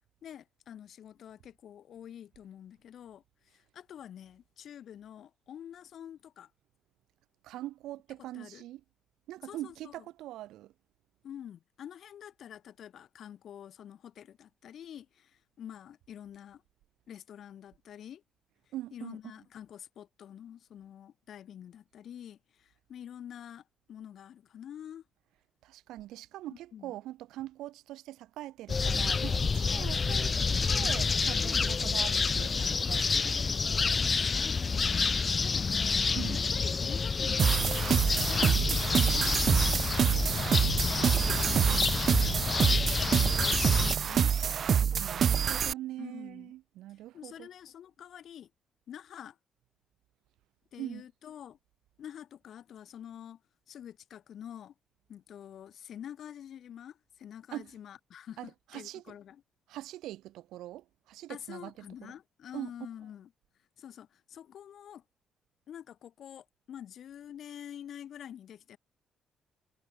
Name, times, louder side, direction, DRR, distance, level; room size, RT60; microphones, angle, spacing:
voice 1, 0.2-6.5 8.3-8.7 9.4-10.0 11.2-16.6 17.1-18.2 18.9-25.0 26.5-26.9 31.4-31.7 34.1-40.2 40.9-42.8 43.1-44.3 46.0-46.5 46.9-48.5 48.9-49.4 50.7-51.6 52.0-53.4 53.7-54.7 55.1-59.4 61.3-63.3 63.8-65.0 65.7-68.8, left 10 dB, 65° left, 7.2 m, -47 dB
voice 2, 7.4-8.8 9.3-10.7 18.7-19.2 25.6-33.6 36.1-36.4 40.9-41.9 45.0-47.5 50.8-51.0 57.5-57.7 58.4-59.1 59.7-62.1 62.5-62.7, right 15 dB, 90° right, 8.0 m, -43 dB
sound 1, 28.7-44.0, left 5 dB, 35° left, 0.3 m, -29 dB
sound 2, 37.4-45.7, right 8 dB, 55° right, 1.2 m, -26 dB
cardioid pair, 90°, 0 cm